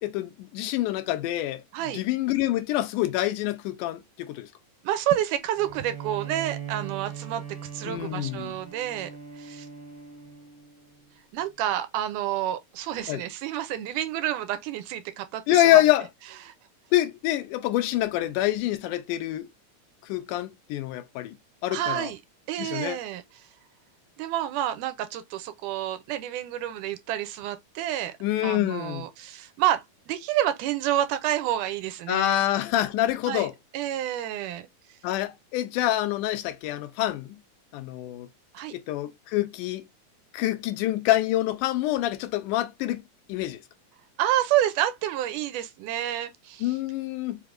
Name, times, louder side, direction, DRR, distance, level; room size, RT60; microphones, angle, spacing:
voice 1, 0.0-1.6 1.9-4.5 7.8-8.6 13.1-13.2 15.5-16.1 16.9-19.5 20.0-21.3 21.6-22.1 22.6-23.0 28.2-29.1 32.1-33.5 35.0-37.3 37.7-38.3 38.7-39.8 40.3-43.0 43.3-43.6 46.6-47.4, left 14 dB, 80° left, 2.1 m, -26 dB
voice 2, 4.8-9.1 9.4-9.7 11.3-15.8 16.4-16.5 21.7-22.2 22.5-23.2 24.2-28.2 28.4-32.4 33.3-33.5 33.7-34.7 38.5-38.7 44.2-46.7, right 12 dB, 80° right, 2.1 m, -29 dB
Bowed string instrument, 5.5-11.0, right 8 dB, 45° right, 0.7 m, -40 dB
5.1 x 3.3 x 2.4 m
omnidirectional pair, 3.8 m